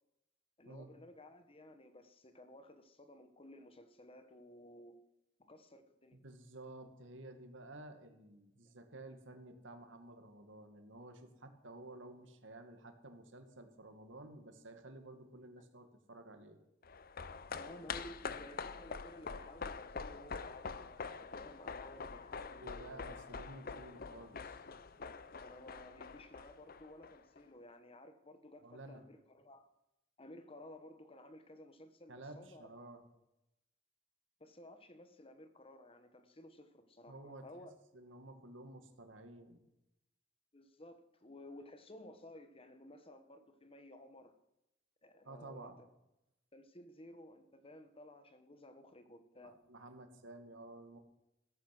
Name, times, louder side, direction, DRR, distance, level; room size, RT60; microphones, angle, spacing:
voice 1, 0.6-4.9 5.4-6.2 15.6-15.7 17.6-23.2 25.4-29.7 30.2-32.7 34.4-37.7 40.5-44.3 45.0-45.9 46.5-49.6, left 1 dB, 30° left, 1.3 m, -55 dB
voice 2, 6.1-16.6 22.6-24.6 28.6-29.0 32.1-33.1 37.1-37.5 37.9-39.6 45.2-45.8 49.4-51.0, right 2 dB, 75° right, 2.2 m, -53 dB
sound 1, 16.8-27.4 27.7-27.8, left 5 dB, 50° left, 0.7 m, -45 dB
16.0 x 14.5 x 6.1 m
head